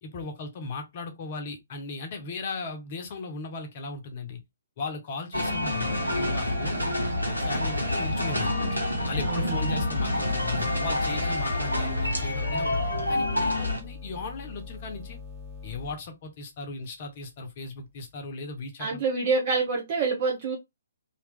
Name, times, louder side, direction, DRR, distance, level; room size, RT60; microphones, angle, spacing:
voice 1, 0.0-4.4 4.8-6.9 7.3-8.5 9.1-12.8 13.1-15.2 15.6-19.0, left 3 dB, 35° left, 0.9 m, -37 dB
sound 1, 5.3-13.8, left 1 dB, 85° right, 1.2 m, -27 dB
sound 2, 9.0-16.0, left 5 dB, 5° right, 1.8 m, -42 dB
voice 2, 9.2-9.7 18.8-20.5, right 4 dB, 35° right, 1.1 m, -27 dB
3.1 x 2.8 x 3.4 m
figure-of-eight pair, 130°, 0 cm